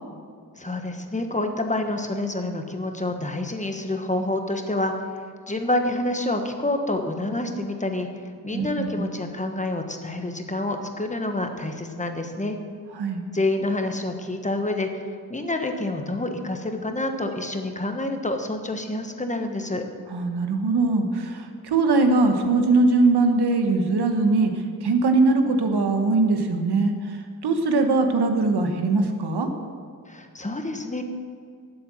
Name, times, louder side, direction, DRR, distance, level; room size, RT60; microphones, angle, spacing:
voice 1, 0.6-4.9 5.5-8.1 8.4-12.6 13.3-15.0 15.3-19.8 30.1-31.0, left 2 dB, 20° left, 5 dB, 1.2 m, -27 dB
voice 2, 8.5-9.0 13.0-13.2 20.1-24.5 24.8-29.5, right 3 dB, 80° right, 5 dB, 1.3 m, -21 dB
11.5 x 7.9 x 7.6 m, 2.2 s
wide cardioid pair, 100°, 39 cm